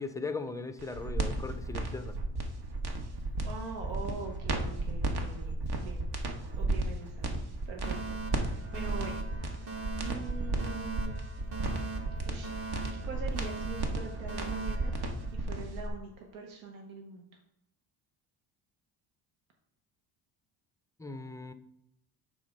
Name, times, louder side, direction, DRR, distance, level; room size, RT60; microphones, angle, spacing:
voice 1, 0.0-2.2 21.0-21.5, left 4 dB, 10° left, 9 dB, 0.4 m, -38 dB
sound 1, 0.8-15.9, right 2 dB, 55° right, 1.3 m, -33 dB
voice 2, 3.4-6.1 6.6-7.3 7.7-9.2 10.0-11.2 12.2-14.9 15.3-17.3, right 4 dB, 80° right, 2 dB, 1.1 m, -43 dB
Alarm, 7.8-15.8, right 4 dB, 30° right, 0.9 m, -42 dB
7.1 x 3.7 x 5.2 m, 0.77 s
cardioid pair, 95°, 47 cm